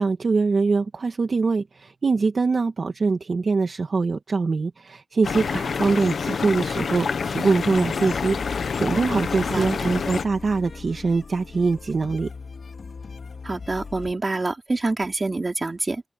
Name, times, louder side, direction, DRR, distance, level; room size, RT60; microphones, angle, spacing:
voice 1, 0.0-12.3, right 4 dB, 55° right, 1.9 m, -23 dB
sound 1, 5.2-10.2, left 5 dB, 85° left, 1.2 m, -27 dB
sound 2, 7.5-14.1, left 4 dB, 65° left, 4.1 m, -39 dB
voice 2, 9.5-9.9 13.4-16.0, right 3 dB, 35° right, 4.0 m, -26 dB
wide cardioid pair, 95°, 0 cm